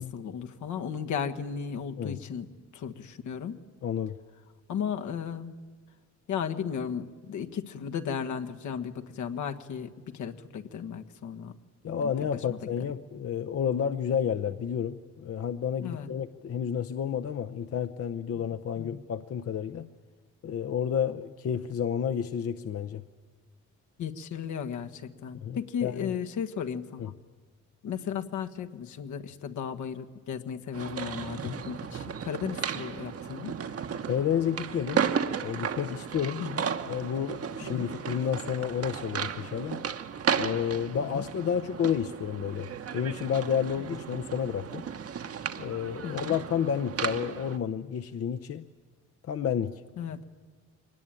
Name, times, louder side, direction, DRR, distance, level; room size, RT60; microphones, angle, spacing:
voice 1, 0.0-2.5 2.7-3.5 4.7-5.5 6.3-11.5 12.0-12.1 12.5-12.6 15.8-16.1 18.3-18.4 18.8-19.0 24.0-27.1 27.8-33.5 36.4-36.6 37.6-37.9 41.0-41.2 46.0-46.4 50.0-50.2, left 7 dB, 75° left, 6 dB, 1.5 m, -35 dB
voice 2, 3.8-4.2 11.8-19.9 20.4-23.0 25.4-26.1 27.0-27.1 31.4-31.6 34.0-35.1 35.4-36.4 36.8-39.8 40.4-44.8 45.6-48.6 49.3-49.8, left 8 dB, 50° left, 8 dB, 0.8 m, -30 dB
sound 1, 30.7-47.6, right 7 dB, 50° right, 1.3 m, -34 dB
22.5 x 19.5 x 9.1 m, 1.4 s
cardioid pair, 90°, 30 cm